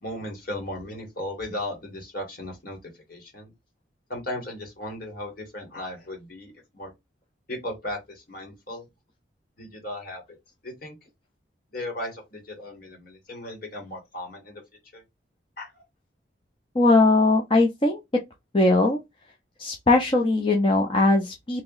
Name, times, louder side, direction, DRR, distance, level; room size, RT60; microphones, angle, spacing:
voice 1, 0.0-2.8 3.1-3.5 4.1-6.9 7.5-8.9 9.6-10.2 10.6-10.9 11.7-14.6 14.9-15.0 15.6-15.8, left 1 dB, 50° left, 1.8 m, -36 dB
voice 2, 16.7-18.0 18.5-19.0 19.6-21.6, left 2 dB, 25° left, 0.6 m, -20 dB
3.0 x 2.9 x 3.9 m
head